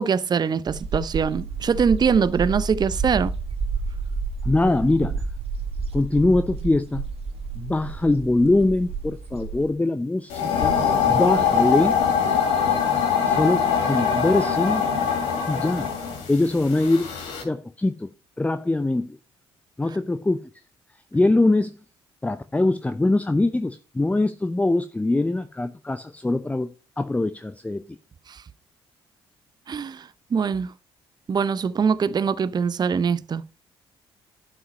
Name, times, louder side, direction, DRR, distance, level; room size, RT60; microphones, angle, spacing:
voice 1, 0.0-3.3 29.7-30.7 31.3-33.5, right 6 dB, 30° right, 0.6 m, -23 dB
sound 1, 0.7-9.7, right 4 dB, 50° right, 1.7 m, -30 dB
voice 2, 4.4-5.2 5.9-7.0 7.6-10.7 11.1-12.0 13.3-14.8 15.5-15.9 16.3-17.1 17.4-18.1 18.4-19.2 19.8-20.4 21.1-21.7 22.2-27.8, left 2 dB, 10° left, 0.6 m, -22 dB
sound 2, 10.3-17.4, left 7 dB, 70° left, 2.7 m, -23 dB
11.0 x 5.7 x 5.3 m
figure-of-eight pair, 45°, 13 cm